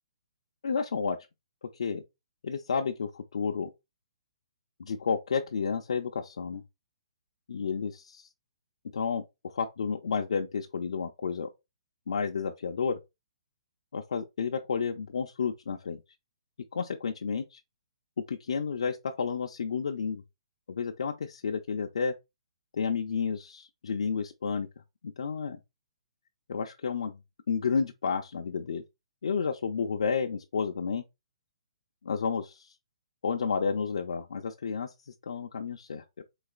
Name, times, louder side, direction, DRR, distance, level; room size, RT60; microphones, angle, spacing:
voice 1, 0.6-1.2 1.6-2.0 2.4-3.7 4.8-6.6 7.5-8.3 8.9-11.5 12.1-13.0 13.9-16.0 16.7-17.6 18.3-20.2 20.7-22.1 22.7-24.7 25.0-25.6 26.5-27.2 27.5-28.8 29.2-31.0 32.0-32.7 33.2-36.2, left 5 dB, 75° left, 0.4 m, -31 dB
3.9 x 2.9 x 2.4 m
hypercardioid pair, 155°, 3 cm